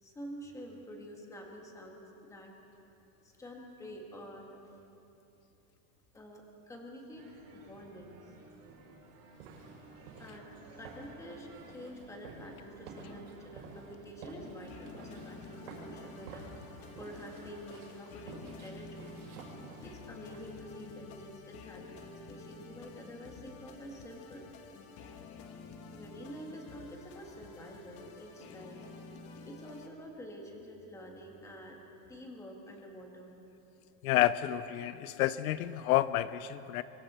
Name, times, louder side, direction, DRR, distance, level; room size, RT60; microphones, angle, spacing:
voice 1, 0.0-2.5 3.2-4.8 6.1-8.4 10.2-19.2 19.8-24.5 25.9-28.8 29.4-31.8 32.1-33.3, equal, 5° left, 1 dB, 1.7 m, -48 dB
sound 1, 7.1-17.6, right 2 dB, 60° right, 6.4 m, -56 dB
sound 2, 9.3-20.6, right 4 dB, 85° right, 6.7 m, -51 dB
sound 3, 13.9-29.9, left 4 dB, 35° left, 1.3 m, -50 dB
voice 2, 34.0-36.8, left 14 dB, 75° left, 15 dB, 0.7 m, -29 dB
24.5 x 24.5 x 4.4 m, 2.8 s
supercardioid pair, 180°, 43 cm